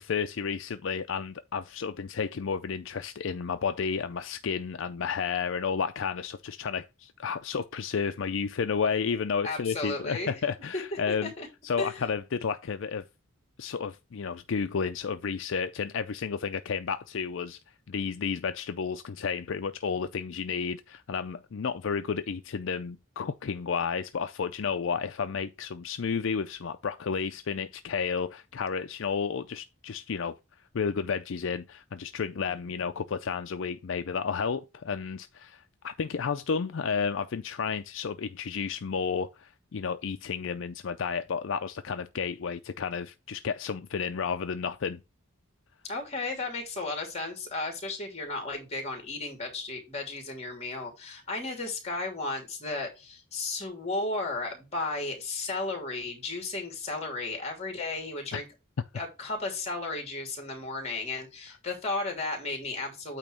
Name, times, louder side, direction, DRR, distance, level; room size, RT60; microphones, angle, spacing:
voice 1, 0.0-11.3 11.6-13.0 13.6-17.6 17.9-30.4 30.7-45.0 58.3-58.4, left 6 dB, 70° left, 0.5 m, -32 dB
voice 2, 9.4-10.4 10.7-10.8 11.2-11.5 11.8-11.9 32.6-32.9 45.8-58.4 58.9-63.2, left 2 dB, 30° left, 2.8 m, -34 dB
8.8 x 3.0 x 6.2 m
head